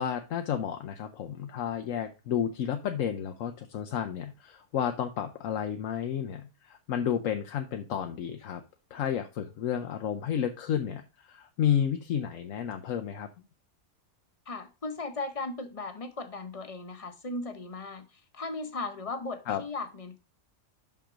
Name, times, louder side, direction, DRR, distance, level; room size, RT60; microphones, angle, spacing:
voice 1, 0.0-8.6 8.9-13.3 19.5-19.6, left 9 dB, 90° left, 1.1 m, -31 dB
voice 2, 14.5-20.2, left 3 dB, 30° left, 0.9 m, -37 dB
5.9 x 5.7 x 5.0 m
omnidirectional pair, 1.3 m